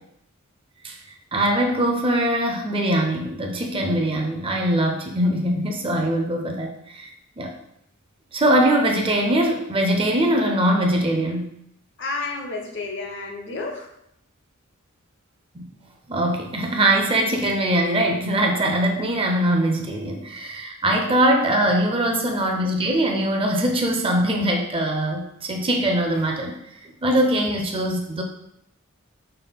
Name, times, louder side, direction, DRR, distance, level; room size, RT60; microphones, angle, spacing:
voice 1, 1.3-7.1 7.4-7.5 8.3-11.5 15.5-15.7 16.1-26.6 26.8-28.2, right 1 dB, 25° right, 2 dB, 0.5 m, -22 dB
voice 2, 12.0-13.9 20.9-21.2, left 3 dB, 60° left, 2 dB, 0.7 m, -31 dB
5.5 x 2.1 x 3.5 m, 0.75 s
head